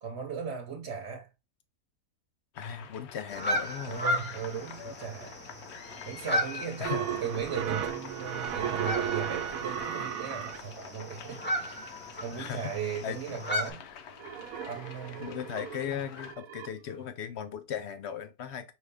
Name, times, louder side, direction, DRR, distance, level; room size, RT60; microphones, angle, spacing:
voice 1, 0.0-1.3 3.9-5.3 6.0-13.9 14.7-15.3, right 6 dB, 55° right, 1.0 m, -37 dB
sound 1, 2.5-16.3, left 7 dB, 90° left, 1.2 m, -48 dB
voice 2, 2.6-4.0 6.8-7.0 12.4-12.7 13.0-13.2 15.2-18.7, left 8 dB, 65° left, 0.7 m, -37 dB
sound 2, 3.3-13.7, equal, 10° left, 1.0 m, -36 dB
sound 3, 6.8-10.6 11.6-11.7 12.3-12.4 14.2-16.7, right 9 dB, 75° right, 1.1 m, -35 dB
5.0 x 2.7 x 3.4 m
omnidirectional pair, 1.5 m